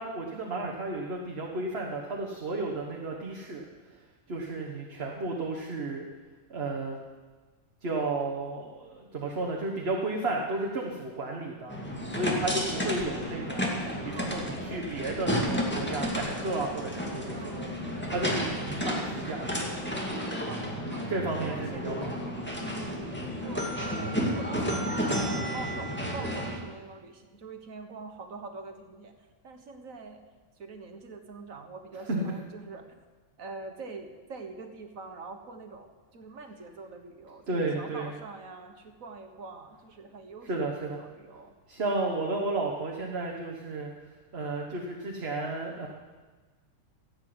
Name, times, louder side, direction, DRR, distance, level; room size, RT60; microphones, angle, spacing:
voice 1, 0.0-3.6 3.9-4.0 4.3-6.0 6.5-7.0 7.8-11.7 12.1-13.7 14.2-17.7 18.1-19.5 21.1-22.2 32.1-32.2 37.5-38.1 40.5-41.0 41.7-43.9 44.3-45.9, right 2 dB, 50° right, 0 dB, 1.7 m, -33 dB
sound 1, 11.7-26.6, equal, 10° left, 2.0 m, -32 dB
voice 2, 12.3-12.7 13.8-14.4 17.3-17.9 18.3-18.9 20.2-21.1 21.4-21.9 22.8-23.1 23.4-30.2 30.6-33.0 33.4-41.5, right 3 dB, 90° right, 5 dB, 1.9 m, -44 dB
15.5 x 8.8 x 7.9 m, 1.3 s
omnidirectional pair, 1.4 m